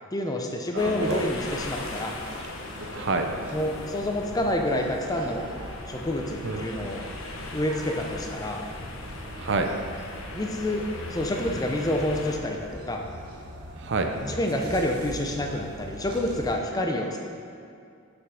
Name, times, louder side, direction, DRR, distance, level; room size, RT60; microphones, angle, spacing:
voice 1, 0.1-2.1 3.5-5.4 5.9-7.1 7.5-8.6 10.3-10.8 11.1-13.0 14.2-17.2, left 1 dB, 15° left, 2 dB, 0.5 m, -28 dB
voice 2, 0.7-1.2 2.9-3.3 6.4-7.0 9.3-9.7 13.8-14.1, right 3 dB, 55° right, 5 dB, 0.6 m, -28 dB
sound 1, 0.8-12.4, left 2 dB, 65° left, 0.7 m, -40 dB
sound 2, 1.0-16.5, equal, 85° right, 1.2 m, -41 dB
6.2 x 6.2 x 4.7 m, 2.4 s
head